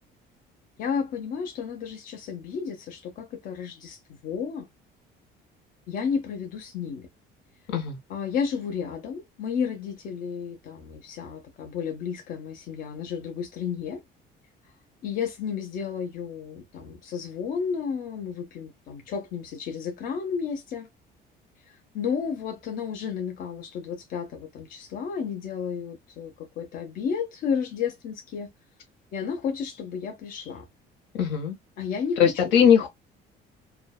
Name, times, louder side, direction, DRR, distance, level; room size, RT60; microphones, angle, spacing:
voice 1, 0.8-4.7 5.9-7.1 8.1-14.0 15.0-20.9 21.7-28.5 29.1-30.7 31.8-32.2, left 6 dB, 50° left, 0.7 m, -32 dB
voice 2, 7.7-8.0 31.1-31.6 32.2-32.9, left 8 dB, 80° left, 0.9 m, -20 dB
2.6 x 2.2 x 2.3 m
cardioid pair, 165°, 19 cm